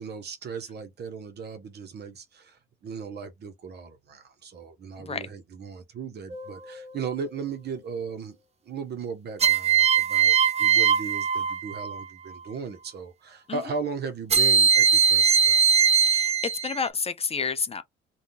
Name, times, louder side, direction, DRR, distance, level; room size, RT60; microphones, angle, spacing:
voice 1, 0.0-8.4 8.7-15.7, right 5 dB, 55° right, 0.8 m, -37 dB
sound 1, 6.3-6.9 9.4-12.1 14.3-16.9, right 7 dB, 35° right, 0.5 m, -21 dB
voice 2, 16.0-17.8, left 5 dB, 30° left, 0.5 m, -30 dB
3.5 x 2.3 x 2.7 m
cardioid pair, 90°, 20 cm